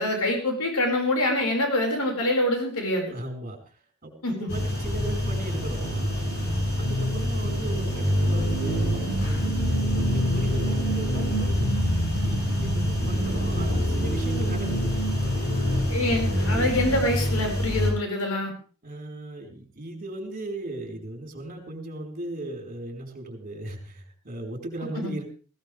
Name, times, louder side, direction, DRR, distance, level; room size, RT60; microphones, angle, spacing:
voice 1, 0.0-3.1 4.2-4.5 15.9-18.5 25.0-25.1, left 1 dB, 85° left, 2 dB, 5.2 m, -25 dB
voice 2, 3.1-11.7 12.2-14.9 15.4-15.9 16.5-16.7 18.8-25.2, right 1 dB, 40° right, 2 dB, 4.7 m, -37 dB
sound 1, 4.5-17.9, equal, 50° left, 7.8 m, -25 dB
19.0 x 17.5 x 3.4 m, 0.39 s
head